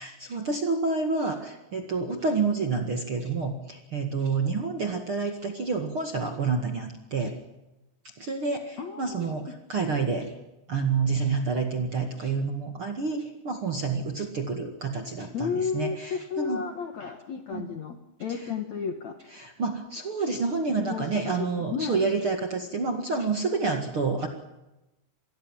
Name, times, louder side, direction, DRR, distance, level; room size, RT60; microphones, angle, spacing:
voice 1, 0.0-7.3 8.2-10.3 10.7-16.6 17.5-17.7 19.4-24.3, right 4 dB, 45° right, 5 dB, 1.8 m, -28 dB
voice 2, 8.8-9.5 15.3-19.2 20.8-22.0, left 6 dB, 60° left, 7 dB, 2.0 m, -33 dB
27.0 x 20.0 x 7.5 m, 0.97 s
omnidirectional pair, 5.0 m